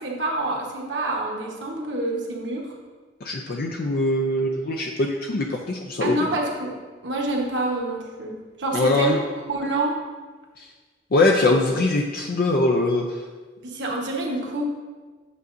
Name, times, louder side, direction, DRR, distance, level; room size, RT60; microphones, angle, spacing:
voice 1, 0.0-2.7 6.0-6.7 7.0-10.0 13.6-14.7, right 2 dB, 70° right, -1 dB, 1.2 m, -27 dB
voice 2, 3.2-6.2 8.7-9.2 10.6-10.7 11.1-13.1, left 2 dB, 55° left, 2 dB, 0.5 m, -22 dB
8.2 x 6.2 x 2.6 m, 1.4 s
head